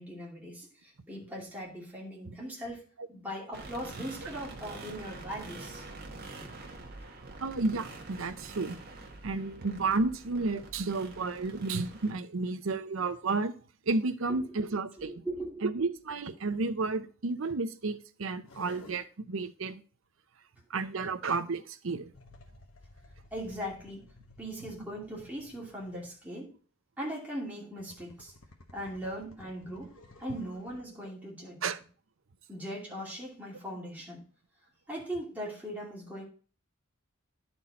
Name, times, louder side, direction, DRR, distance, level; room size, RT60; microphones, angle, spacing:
voice 1, 0.0-2.8 3.1-5.8 6.4-6.5 14.3-14.7 15.0-15.6 23.3-24.0 24.4-26.5 27.0-28.3 28.7-29.9 30.2-31.6 32.5-34.2 34.9-36.2, equal, 10° right, 2.7 m, -39 dB
sound 1, 3.5-12.1, right 2 dB, 45° right, 1.3 m, -46 dB
voice 2, 7.4-8.8 9.2-13.5 13.9-15.1 15.6-19.8 20.7-22.1 31.6-31.8, right 3 dB, 65° right, 0.7 m, -32 dB
sound 2, 18.4-19.0 22.1-26.3 27.7-30.8, left 2 dB, 65° left, 1.2 m, -55 dB
11.0 x 4.5 x 4.2 m
head